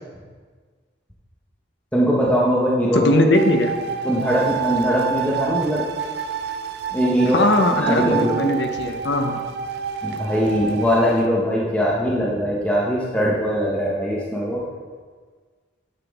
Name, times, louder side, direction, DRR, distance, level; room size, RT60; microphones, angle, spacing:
voice 1, 1.9-3.2 4.0-5.8 6.9-7.4 7.8-8.4 10.0-14.6, equal, 5° left, -6 dB, 1.0 m, -21 dB
voice 2, 2.9-3.7 7.3-9.4, left 1 dB, 65° left, 5 dB, 0.8 m, -19 dB
sound 1, 3.3-11.3, right 8 dB, 55° right, 0.4 m, -28 dB
9.6 x 5.9 x 3.5 m, 1.5 s
head